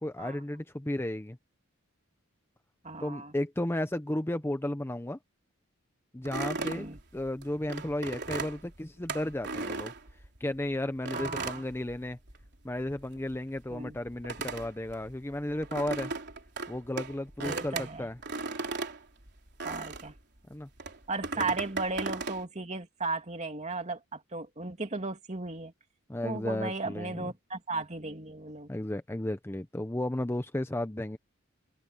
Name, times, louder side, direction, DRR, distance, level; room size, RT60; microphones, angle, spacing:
voice 1, 0.0-1.4 3.0-5.2 6.1-6.9 7.1-9.9 10.4-12.2 12.6-16.1 16.7-18.2 20.5-20.7 21.4-21.5 26.1-27.3 28.7-31.2, left 1 dB, 10° left, 0.7 m, -34 dB
voice 2, 2.8-3.3 6.6-7.0 11.1-11.6 13.7-14.0 17.4-18.1 19.6-20.1 21.1-25.7 26.2-28.7, right 3 dB, 35° right, 2.7 m, -36 dB
sound 1, 6.3-10.6 11.1-12.5 12.8-20.2 20.8-22.4, right 3 dB, 55° right, 3.8 m, -37 dB
open air
head